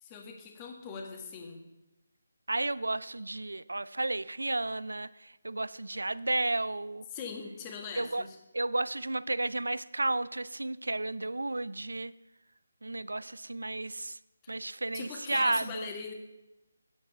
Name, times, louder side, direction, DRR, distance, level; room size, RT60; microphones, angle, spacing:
voice 1, 0.0-1.6 7.1-8.4 14.4-14.6 14.9-16.1, left 5 dB, 20° left, 3 dB, 1.7 m, -41 dB
voice 2, 2.5-7.1 8.0-8.2 8.5-12.1 12.8-14.2 14.5-15.9, right 2 dB, 80° right, 18 dB, 0.4 m, -32 dB
9.8 x 8.0 x 6.7 m, 0.97 s
figure-of-eight pair, 155°, 0 cm